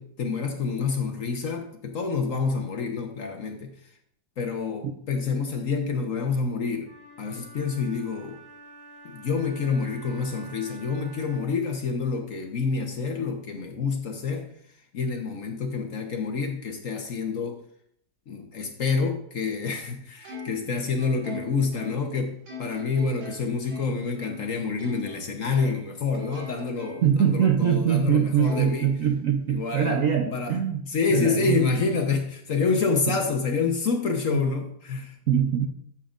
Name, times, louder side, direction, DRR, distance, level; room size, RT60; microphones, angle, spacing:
voice 1, 0.0-3.7 4.4-6.9 7.2-8.4 9.0-14.5 14.9-17.6 18.3-28.9 29.5-30.0 30.3-30.6 30.8-35.1, left 4 dB, 50° left, 4 dB, 1.1 m, -28 dB
Wind instrument woodwind instrument, 6.8-11.6, right 2 dB, 10° right, 2.6 m, -48 dB
Plucked string instrument, 20.2-25.2 25.5-27.2 27.7-27.8 28.4-29.6, left 2 dB, 90° right, 2.8 m, -41 dB
voice 2, 27.0-30.8 31.1-31.6 35.3-35.7, right 8 dB, 60° right, 4 dB, 0.9 m, -23 dB
13.5 x 7.3 x 2.5 m, 0.67 s
omnidirectional pair, 2.1 m